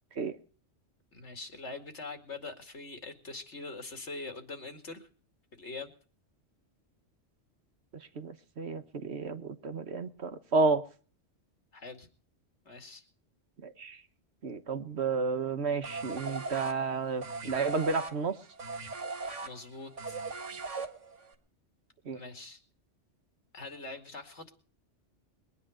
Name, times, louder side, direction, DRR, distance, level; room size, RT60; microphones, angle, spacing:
voice 1, 1.1-5.1 5.6-5.9 11.7-12.1 12.6-13.0 19.2-20.2 22.1-22.6 23.5-24.5, left 3 dB, 70° left, 6 dB, 2.6 m, -43 dB
voice 2, 8.2-10.8 13.6-14.0 14.4-18.3 22.1-22.2, right 4 dB, 65° right, 10 dB, 1.5 m, -31 dB
sound 1, 15.8-21.3, right 3 dB, 90° right, 2.0 m, -39 dB
22.0 x 9.8 x 5.0 m, 0.41 s
omnidirectional pair, 1.2 m